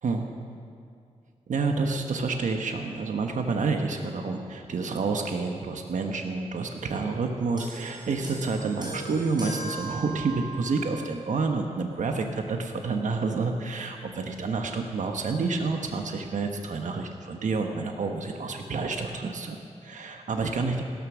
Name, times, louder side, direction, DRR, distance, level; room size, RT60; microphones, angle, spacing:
voice 1, 1.5-20.8, right 4 dB, 75° right, 4 dB, 1.2 m, -29 dB
sound 1, 7.6-11.2 12.1-12.2, right 2 dB, 35° right, 5.4 m, -39 dB
16.5 x 13.5 x 6.2 m, 2.3 s
wide cardioid pair, 85°, 13 cm